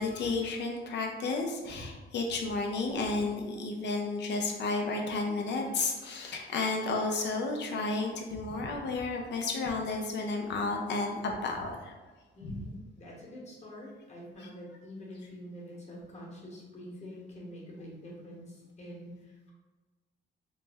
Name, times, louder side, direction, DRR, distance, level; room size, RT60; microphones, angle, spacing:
voice 1, 0.0-11.9 12.5-12.6 14.4-14.5, left 3 dB, 60° left, 2 dB, 0.6 m, -32 dB
voice 2, 12.3-19.5, equal, 35° left, -4 dB, 1.2 m, -46 dB
3.2 x 2.0 x 3.4 m, 1.3 s
cardioid pair, 90°, 20 cm